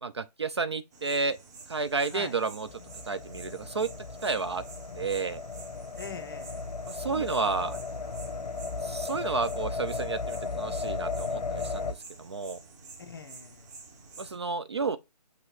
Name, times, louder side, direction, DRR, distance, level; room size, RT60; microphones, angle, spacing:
voice 1, 0.0-1.4 1.7-2.7 3.1-3.9 4.2-4.6 5.0-5.4 6.9-7.7 8.8-12.6 14.2-15.0, right 4 dB, 40° right, 0.4 m, -31 dB
sound 1, 0.9-14.4, right 4 dB, 25° right, 1.1 m, -49 dB
sound 2, 2.7-11.9, left 4 dB, 75° left, 0.7 m, -36 dB
voice 2, 6.0-6.7 7.1-7.3 7.6-8.1 13.0-13.7, left 5 dB, 35° left, 0.7 m, -43 dB
5.6 x 3.0 x 3.0 m
figure-of-eight pair, 160°, 21 cm